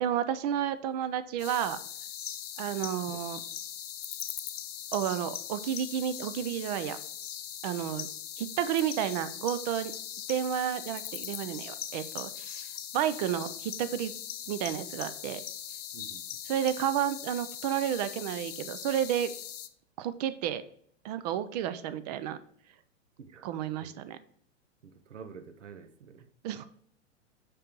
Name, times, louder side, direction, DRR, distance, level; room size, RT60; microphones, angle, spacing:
voice 1, 0.0-1.8 2.6-3.4 4.9-7.0 7.6-8.1 8.4-9.9 10.3-12.7 12.9-14.1 14.5-15.4 16.5-19.3 20.0-20.6 21.0-22.4 23.4-24.2 26.4-26.7, right 10 dB, 35° right, 13 dB, 0.4 m, -31 dB
sound 1, 1.4-19.7, left 10 dB, 75° left, 0.6 m, -40 dB
voice 2, 23.2-23.9 24.8-26.3, right 6 dB, 80° right, 9 dB, 0.8 m, -49 dB
6.5 x 5.3 x 2.9 m, 0.63 s
hypercardioid pair, 110°, 36 cm